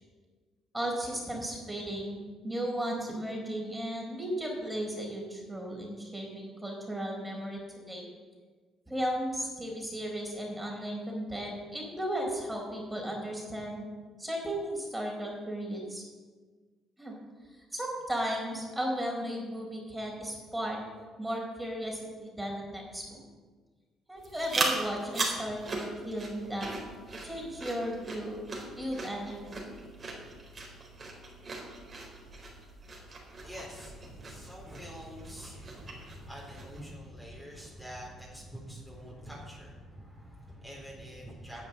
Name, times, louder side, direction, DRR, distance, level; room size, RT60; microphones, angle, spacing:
voice 1, 0.7-8.1 8.9-13.9 14.2-16.0 17.0-17.2 17.6-20.8 21.2-23.2 24.1-26.7 27.2-28.4 28.7-29.7, equal, 10° right, 0 dB, 4.4 m, -35 dB
sound 1, 24.2-36.9, right 3 dB, 40° right, 4.3 m, -39 dB
voice 2, 33.4-41.7, equal, 5° left, -4 dB, 3.9 m, -45 dB
11.0 x 7.2 x 7.6 m, 1.4 s
hypercardioid pair, 60°, 0 cm